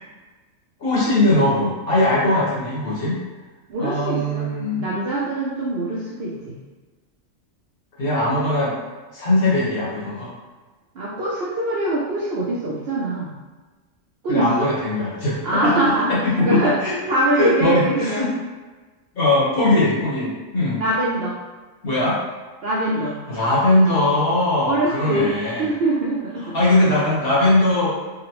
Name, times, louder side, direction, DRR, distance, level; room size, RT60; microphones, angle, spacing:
voice 1, 0.8-3.2 3.8-4.9 8.0-8.7 9.1-10.3 14.3-17.0 17.3-18.3 19.1-20.8 21.8-22.2 23.3-25.7 26.4-28.0, left 1 dB, 50° left, -7 dB, 1.1 m, -20 dB
voice 2, 3.7-4.4 4.8-6.5 11.0-13.3 14.2-14.7 15.4-16.2 16.4-16.8 17.1-18.3 20.8-21.4 22.6-23.1 24.6-25.3 25.6-26.5, right 1 dB, 65° right, -5 dB, 0.6 m, -23 dB
3.8 x 2.0 x 2.9 m, 1.3 s
omnidirectional pair, 1.4 m